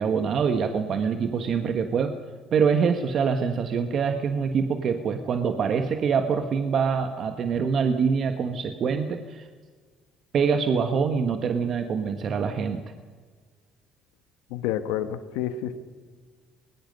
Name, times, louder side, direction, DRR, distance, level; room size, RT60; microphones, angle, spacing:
voice 1, 0.0-2.1 2.5-9.5 10.3-12.8, right 6 dB, 55° right, 7 dB, 1.4 m, -25 dB
voice 2, 14.5-15.8, left 10 dB, 85° left, 11 dB, 1.4 m, -29 dB
24.5 x 20.5 x 5.4 m, 1.5 s
supercardioid pair, 70°, 0 cm